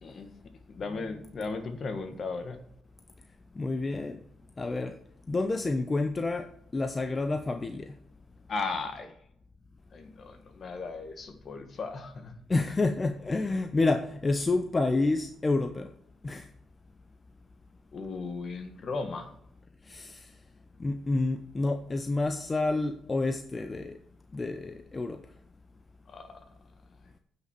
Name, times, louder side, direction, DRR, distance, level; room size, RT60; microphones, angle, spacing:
voice 1, 0.7-2.6 8.5-9.1 9.9-12.3 17.9-19.3 26.1-26.4, left 4 dB, 50° left, 8 dB, 1.6 m, -36 dB
voice 2, 3.6-4.2 4.6-4.9 5.3-6.5 6.7-7.9 12.5-15.9 16.2-16.5 19.9-20.3 20.8-24.0 24.3-25.2, left 3 dB, 25° left, 7 dB, 0.7 m, -29 dB
9.3 x 5.9 x 6.0 m, 0.71 s
cardioid pair, 90°, 0 cm